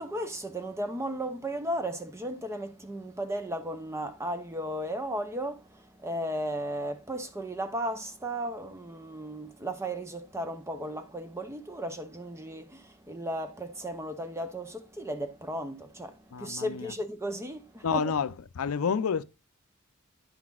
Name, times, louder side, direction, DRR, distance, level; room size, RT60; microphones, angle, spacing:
voice 1, 0.0-18.1, right 1 dB, 15° right, 0.6 m, -35 dB
voice 2, 16.3-16.9 17.8-19.2, left 6 dB, 85° left, 0.5 m, -29 dB
10.0 x 5.9 x 2.4 m
head